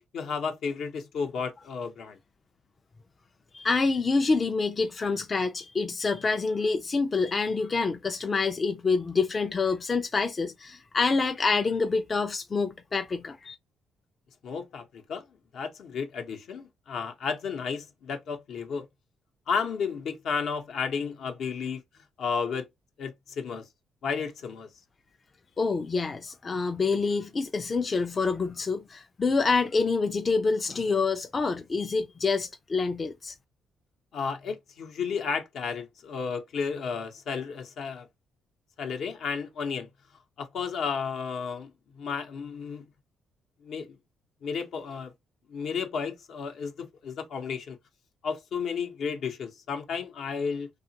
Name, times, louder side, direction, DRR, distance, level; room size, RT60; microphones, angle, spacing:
voice 1, 0.0-2.2 14.4-15.2 15.5-18.9 19.5-21.8 22.2-22.7 23.0-23.7 24.0-24.7 34.1-38.1 38.8-39.9 40.4-42.9 43.6-44.0 44.4-45.1 45.5-47.8 48.2-50.7, left 6 dB, 70° left, 0.7 m, -33 dB
voice 2, 3.5-13.5 25.6-33.3, left 4 dB, 35° left, 0.4 m, -27 dB
2.8 x 2.3 x 2.7 m
cardioid pair, 90°, 0 cm